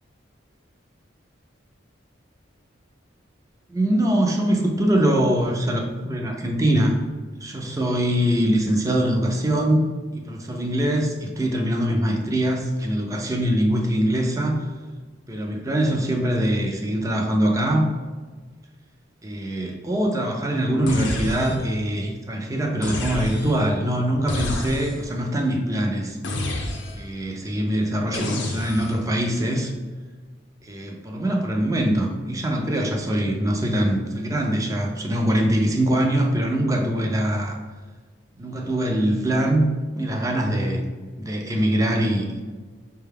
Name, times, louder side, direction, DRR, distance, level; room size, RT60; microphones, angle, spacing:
voice 1, 3.7-7.0 7.4-9.9 10.2-14.6 15.3-17.9 19.2-26.2 27.0-29.7 30.6-37.6 38.4-40.8 41.2-42.4, right 1 dB, 15° right, 1 dB, 0.4 m, -23 dB
sound 1, 20.9-21.8 22.8-23.7 24.3-25.1 26.2-27.2 28.1-29.0, left 2 dB, 65° left, 0.5 m, -30 dB
4.8 x 2.2 x 3.3 m, 1.4 s
head